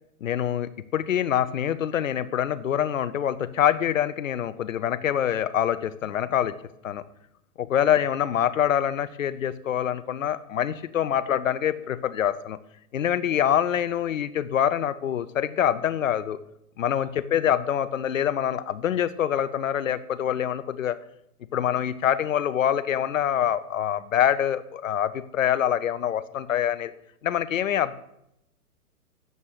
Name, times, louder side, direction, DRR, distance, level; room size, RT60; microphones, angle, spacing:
voice 1, 0.2-6.5 6.8-7.0 7.6-12.6 12.9-16.4 16.8-21.0 21.5-26.9 27.2-27.9, left 10 dB, 60° left, 13 dB, 0.9 m, -25 dB
12.5 x 7.4 x 4.9 m, 0.78 s
figure-of-eight pair, 115°, 45 cm